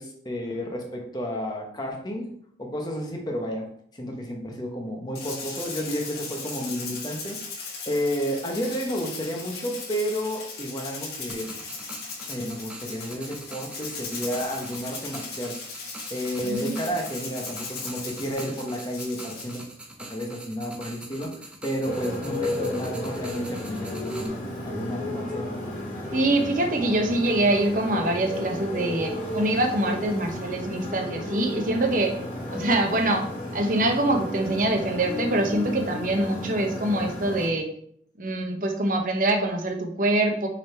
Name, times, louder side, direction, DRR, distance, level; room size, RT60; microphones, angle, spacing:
voice 1, 0.0-2.3 2.6-3.7 3.9-11.5 12.2-15.6 16.1-19.6 20.0-24.3 24.6-25.5, equal, 25° left, 1 dB, 1.1 m, -31 dB
Rattle (instrument), 5.1-19.7, left 4 dB, 60° left, 2.0 m, -38 dB
sound 1, 11.3-24.3, right 1 dB, 5° right, 0.7 m, -43 dB
voice 2, 16.4-16.8 26.1-32.1 32.5-33.3 33.5-37.7 38.2-40.5, right 1 dB, 45° right, 3 dB, 1.0 m, -24 dB
Motorcycle, 21.8-37.5, left 1 dB, 45° left, 2.4 m, -33 dB
6.3 x 4.0 x 4.4 m, 0.66 s
head